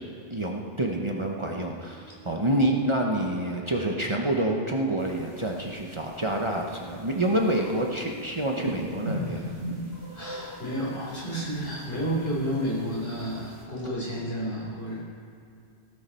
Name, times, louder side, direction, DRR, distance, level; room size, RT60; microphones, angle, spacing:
voice 1, 0.3-9.5, right 1 dB, 30° right, 0 dB, 1.1 m, -27 dB
voice 2, 2.0-2.3 9.3-9.4 10.1-15.0, equal, 65° left, -6 dB, 4.9 m, -31 dB
sound 1, 5.0-13.6, equal, 85° right, 2.4 m, -40 dB
16.5 x 13.5 x 4.5 m, 2.4 s
omnidirectional pair, 1.1 m